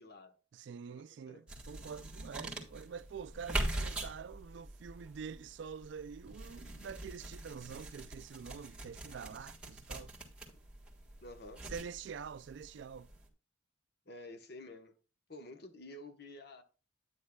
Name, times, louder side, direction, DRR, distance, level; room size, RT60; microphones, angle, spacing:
voice 1, 0.0-0.3 0.9-1.4 11.2-11.6 14.1-14.9 15.3-16.6, left 2 dB, 50° left, 1.0 m, -50 dB
voice 2, 0.5-10.1 11.6-13.1, right 6 dB, 60° right, 0.3 m, -46 dB
sound 1, 1.5-13.3, right 1 dB, 5° right, 1.5 m, -43 dB
9.9 x 9.5 x 2.2 m
head